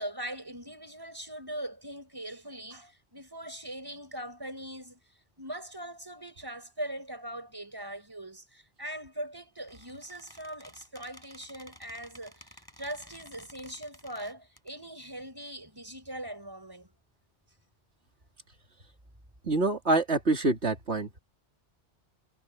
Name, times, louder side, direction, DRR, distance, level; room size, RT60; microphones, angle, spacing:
voice 1, 0.0-5.0 5.4-16.9, right 1 dB, 20° right, 6.3 m, -41 dB
Squeak, 9.6-14.7, equal, 20° left, 7.6 m, -53 dB
voice 2, 19.4-21.2, right 2 dB, 80° right, 3.1 m, -26 dB
omnidirectional pair, 1.1 m